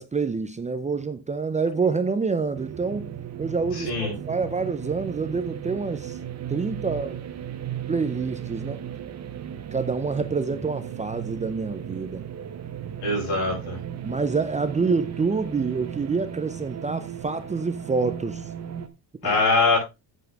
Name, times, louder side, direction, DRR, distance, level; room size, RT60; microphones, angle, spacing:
voice 1, 0.0-3.1 3.4-6.2 6.5-7.2 7.9-8.8 9.7-12.2 14.0-18.5 19.2-19.4, right 4 dB, 15° right, 0.7 m, -27 dB
sound 1, 2.5-18.9, right 9 dB, 40° right, 1.2 m, -36 dB
voice 2, 3.7-4.1 13.0-13.8 19.2-19.8, left 3 dB, 70° left, 7.2 m, -22 dB
9.2 x 8.4 x 3.5 m
cardioid pair, 120°, 42 cm